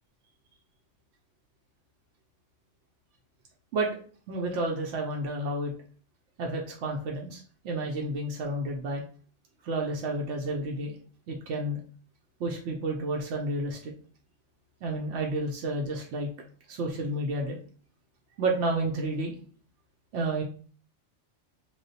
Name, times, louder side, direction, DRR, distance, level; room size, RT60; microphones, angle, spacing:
voice 1, 4.3-5.7 6.4-9.0 9.6-11.0 11.3-11.8 12.4-13.9 14.8-16.3 16.7-17.6 18.4-19.3 20.1-20.4, right 2 dB, 70° right, 0 dB, 0.9 m, -30 dB
3.2 x 2.3 x 3.9 m, 0.43 s
omnidirectional pair, 1.3 m